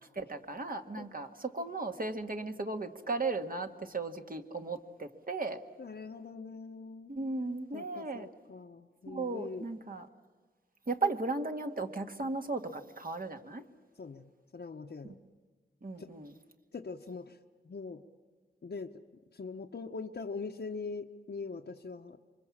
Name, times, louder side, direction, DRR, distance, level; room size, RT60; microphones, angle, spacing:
voice 1, 0.1-5.6 7.1-8.3 9.1-10.1 10.9-13.7 15.8-16.3, right 3 dB, 45° right, 5 dB, 1.7 m, -36 dB
voice 2, 5.8-7.1 7.7-9.6 14.0-15.2 16.0-16.1 16.7-17.4 17.6-18.0 18.6-18.9 19.3-22.2, left 4 dB, 60° left, 2 dB, 1.0 m, -42 dB
27.5 x 24.0 x 7.4 m, 1.4 s
wide cardioid pair, 70°, 20 cm